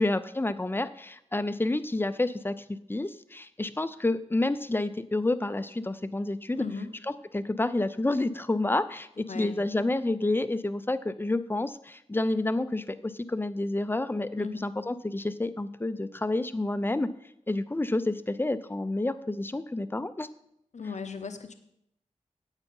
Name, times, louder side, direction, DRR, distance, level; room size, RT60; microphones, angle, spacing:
voice 1, 0.0-2.5 2.9-6.6 7.3-17.1 17.5-20.3, left 2 dB, 15° left, 12 dB, 0.5 m, -29 dB
voice 2, 6.5-6.9 9.2-9.6 14.4-14.6 20.7-21.5, left 5 dB, 70° left, 8 dB, 0.8 m, -37 dB
9.4 x 8.2 x 5.4 m, 0.77 s
wide cardioid pair, 60°, 13 cm